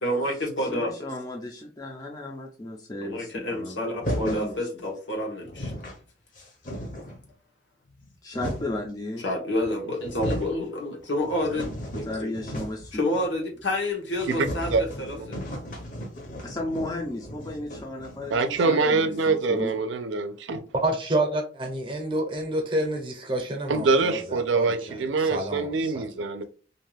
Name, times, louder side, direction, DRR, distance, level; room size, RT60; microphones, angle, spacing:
voice 1, 0.0-0.9 3.0-5.7 9.2-11.7 11.9-12.3 12.9-15.4 18.6-19.1 24.8-25.7, left 1 dB, 85° left, 1.0 m, -29 dB
voice 2, 0.7-4.6 8.2-9.3 12.1-13.0 16.4-19.8, left 2 dB, 20° left, 0.4 m, -35 dB
sound 1, 4.0-4.5 5.2-5.3 5.4-6.0 6.4-7.2 7.9-8.9 9.6-9.7 10.0-10.6 11.0-12.9 13.2-13.3 13.6-13.7 14.1-18.6, equal, 45° left, 0.7 m, -35 dB
voice 3, 14.3-14.8 15.1-15.3 18.3-20.6 23.7-26.4, right 3 dB, 90° right, 0.4 m, -24 dB
voice 4, 20.8-24.7 25.2-26.1, right 1 dB, 30° right, 0.6 m, -28 dB
2.6 x 2.3 x 3.2 m
head